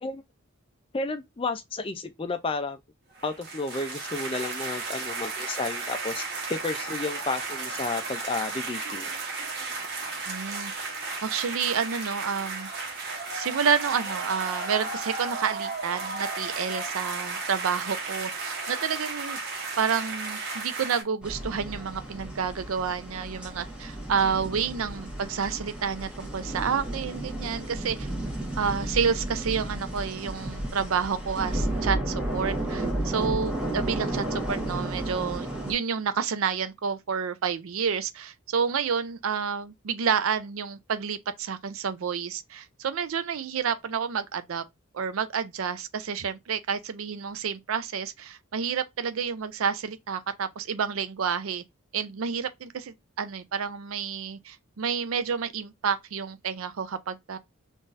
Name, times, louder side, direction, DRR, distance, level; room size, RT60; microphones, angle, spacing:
voice 1, 0.9-2.8 3.2-6.2 6.5-9.1, left 3 dB, 25° left, 0.4 m, -32 dB
sound 1, 3.1-21.0, right 3 dB, 50° right, 1.1 m, -34 dB
voice 2, 10.3-10.9 11.2-12.7 13.3-19.4 19.8-28.1 28.6-44.6 44.9-51.6 51.9-57.4, right 6 dB, 80° right, 0.5 m, -29 dB
sound 2, 21.2-35.7, right 1 dB, 5° right, 1.2 m, -32 dB
3.8 x 2.5 x 2.5 m
head